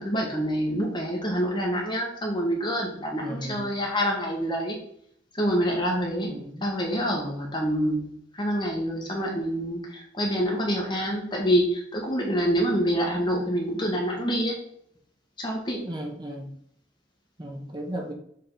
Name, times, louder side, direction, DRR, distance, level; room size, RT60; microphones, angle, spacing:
voice 1, 0.0-4.8 5.3-6.3 6.6-8.1 8.4-14.5 15.4-15.8, equal, 25° left, -1 dB, 1.3 m, -26 dB
voice 2, 3.2-3.7 6.2-6.7 15.8-16.5 17.4-18.1, right 1 dB, 25° right, 2 dB, 1.0 m, -35 dB
6.7 x 3.7 x 3.9 m, 0.69 s
head